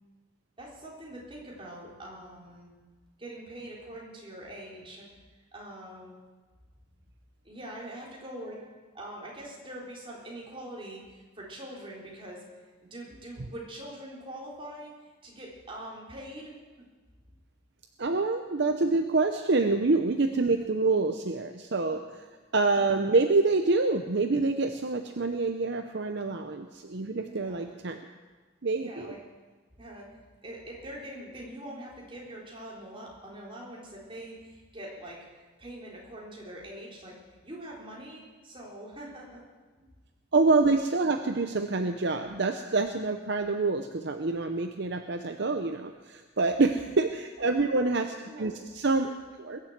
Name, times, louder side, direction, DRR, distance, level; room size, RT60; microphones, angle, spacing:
voice 1, 0.6-2.7 3.2-5.1 5.5-6.1 7.4-12.4 12.8-14.9 15.2-16.5 22.0-22.2 27.2-27.7 28.7-29.2 29.8-30.1 30.4-35.2 35.6-37.2 37.4-39.4 39.8-39.9 47.4-47.5 47.8-47.9 48.3-48.5, right 1 dB, 25° right, -4 dB, 3.8 m, -43 dB
voice 2, 18.0-22.2 22.5-28.0 28.6-29.1 40.3-49.6, right 3 dB, 55° right, 6 dB, 0.7 m, -27 dB
21.5 x 7.5 x 7.9 m, 1.4 s
head